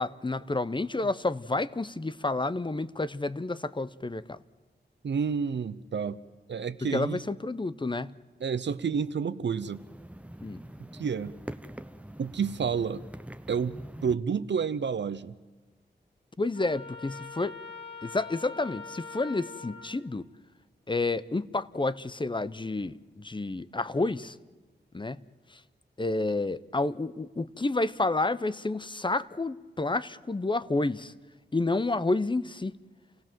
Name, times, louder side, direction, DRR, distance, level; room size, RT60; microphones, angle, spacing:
voice 1, 0.0-4.4 6.9-8.2 10.4-10.6 16.4-17.5 18.0-20.3 20.9-24.4 24.9-25.2 25.5-25.6 26.0-31.1 31.5-32.7, left 2 dB, 25° left, 0.8 m, -30 dB
voice 2, 5.0-6.2 6.5-7.2 8.4-9.8 10.8-11.3 12.2-13.0 13.5-15.3, right 6 dB, 70° right, 0.8 m, -30 dB
sound 1, 9.5-14.1, right 1 dB, 5° right, 0.9 m, -44 dB
Trumpet, 16.5-19.9, left 4 dB, 65° left, 3.6 m, -43 dB
28.5 x 16.5 x 7.6 m
cardioid pair, 60°, 19 cm